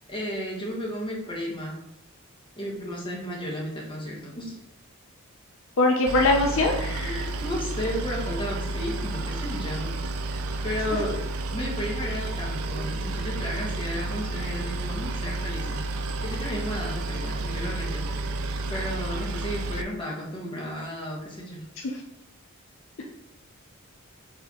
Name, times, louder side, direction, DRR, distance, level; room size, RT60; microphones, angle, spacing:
voice 1, 0.1-1.8 2.6-4.6 6.7-9.9 10.6-11.2 11.5-18.1 18.7-21.6, equal, 25° left, -4 dB, 1.2 m, -33 dB
voice 2, 5.8-6.8 21.8-22.0, left 2 dB, 60° left, 0 dB, 0.5 m, -21 dB
Boat Water vehicle, 6.1-19.8, right 2 dB, 70° right, 0.4 m, -31 dB
4.3 x 3.4 x 3.6 m, 0.92 s
head